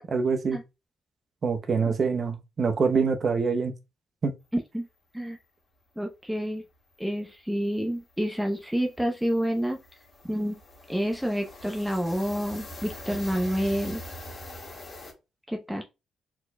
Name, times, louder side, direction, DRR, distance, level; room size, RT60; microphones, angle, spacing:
voice 1, 0.1-0.6 1.4-3.7 4.2-4.3, right 5 dB, 45° right, 0.8 m, -25 dB
voice 2, 4.5-4.9 5.1-5.4 6.0-6.6 7.0-9.8 10.3-10.6 10.9-14.0 15.5-15.8, equal, 5° right, 0.7 m, -28 dB
sound 1, 6.7-6.8 7.1-7.3 7.6-15.1, left 1 dB, 30° left, 1.7 m, -43 dB
4.3 x 4.3 x 2.2 m
cardioid pair, 90°, 0 cm